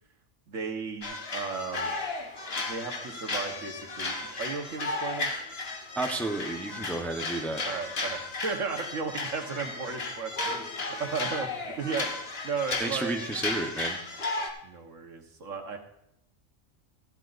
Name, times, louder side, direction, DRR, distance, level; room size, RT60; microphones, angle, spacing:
voice 1, 0.5-1.9 2.6-5.4 7.1-7.2 7.6-12.1 12.4-13.2 14.6-15.8, right 5 dB, 70° right, 4 dB, 1.6 m, -35 dB
sound 1, 1.0-14.5, left 3 dB, 50° left, 1.5 m, -34 dB
voice 2, 6.0-7.6 12.8-14.0, right 2 dB, ahead, 3 dB, 0.8 m, -31 dB
15.0 x 12.0 x 2.6 m, 0.78 s
omnidirectional pair, 1.4 m